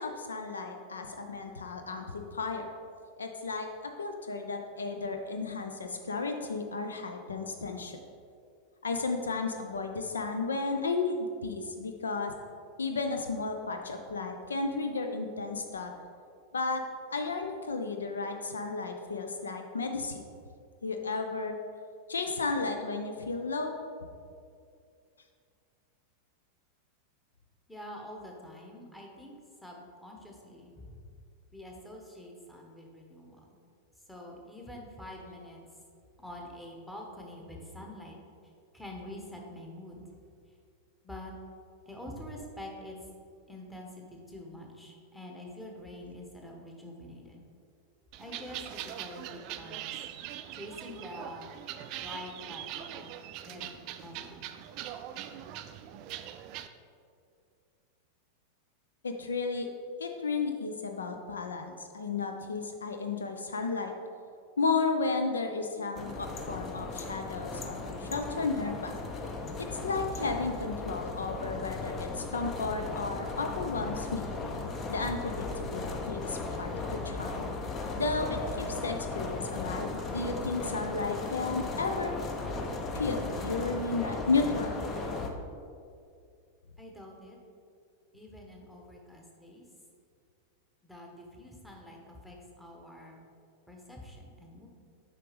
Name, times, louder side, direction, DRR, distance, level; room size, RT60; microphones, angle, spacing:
voice 1, 0.0-2.7 3.2-8.0 8.8-12.3 12.8-15.9 16.5-16.8 17.1-20.3 20.8-21.6 22.1-23.8 59.0-59.7 60.0-63.9 64.6-68.9 69.6-74.3 74.9-77.4 78.0-82.1 82.9-84.8, left 4 dB, 70° left, 5 dB, 0.4 m, -33 dB
voice 2, 27.7-29.3 29.6-31.0 31.5-33.5 34.1-35.6 36.2-38.1 38.7-40.2 41.0-41.3 41.9-43.0 43.5-47.4 48.2-49.9 50.5-51.5 52.0-53.1 53.4-54.5 86.8-87.4 88.1-89.7 90.8-93.2 93.7-94.7, left 1 dB, 5° left, 0 dB, 1.0 m, -46 dB
sound 1, 48.1-56.7, right 11 dB, 40° right, 0.3 m, -42 dB
sound 2, 66.0-85.3, left 3 dB, 25° left, 0.6 m, -36 dB
7.5 x 5.0 x 3.2 m, 2.4 s
figure-of-eight pair, 90°, 0 cm